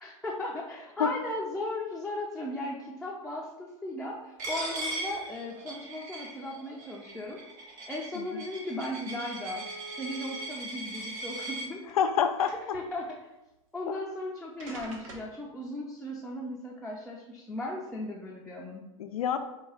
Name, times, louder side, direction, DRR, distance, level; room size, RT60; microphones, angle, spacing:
voice 1, 0.0-9.7 10.0-11.8 12.7-13.1 13.7-18.8, left 1 dB, 5° left, -4 dB, 0.5 m, -37 dB
Coin (dropping), 4.4-11.7, right 2 dB, 45° right, 1.4 m, -39 dB
sound 1, 8.4-8.5 8.8-8.9 9.5-10.4 11.3-12.1 12.5-12.9 14.0-14.1 14.6-15.4, right 2 dB, 70° right, 1.2 m, -46 dB
voice 2, 11.9-12.8 13.9-14.0 19.0-19.4, left 8 dB, 90° left, 8 dB, 0.5 m, -28 dB
4.5 x 2.3 x 4.8 m, 0.98 s
hypercardioid pair, 125°, 18 cm